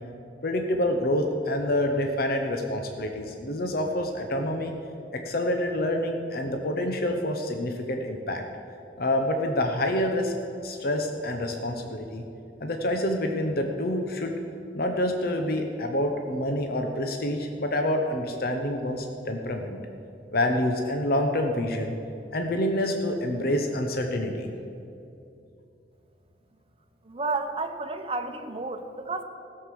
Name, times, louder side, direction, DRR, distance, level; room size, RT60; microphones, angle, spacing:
voice 1, 0.4-4.7 5.1-8.4 9.0-10.3 10.6-12.2 12.6-14.4 14.7-19.8 20.3-21.9 22.3-24.5, left 1 dB, 55° left, 4 dB, 0.9 m, -27 dB
voice 2, 27.0-29.2, right 3 dB, 30° right, 6 dB, 0.8 m, -31 dB
16.0 x 6.7 x 7.6 m, 2.6 s
head